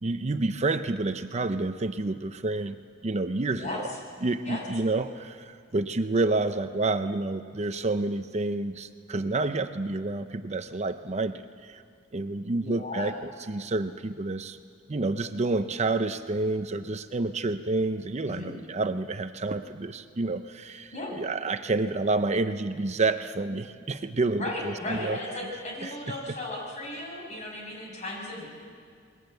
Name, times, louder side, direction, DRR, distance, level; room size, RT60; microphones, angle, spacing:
voice 1, 0.0-2.8 3.0-3.8 4.2-11.8 12.1-14.6 14.9-25.2 25.8-26.0, right 2 dB, 35° right, 9 dB, 0.6 m, -29 dB
voice 2, 3.5-4.0 4.4-4.6 12.6-13.1 18.3-18.5 20.9-21.2 24.4-28.5, left 2 dB, 35° left, -1 dB, 6.7 m, -35 dB
28.5 x 21.5 x 8.1 m, 2.1 s
head